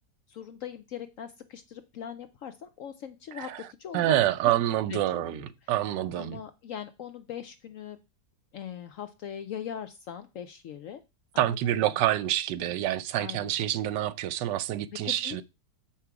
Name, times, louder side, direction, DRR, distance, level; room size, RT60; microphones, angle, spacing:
voice 1, 0.3-3.5 3.8-4.1 4.9-5.4 6.2-8.0 8.5-11.0 11.3-11.6 11.8-12.0 13.2-13.5 15.0-15.4, left 9 dB, 70° left, 0.8 m, -40 dB
voice 2, 3.4-3.7 3.9-6.4 11.4-15.4, right 13 dB, 85° right, 1.3 m, -27 dB
7.2 x 5.9 x 4.7 m
omnidirectional pair, 1.9 m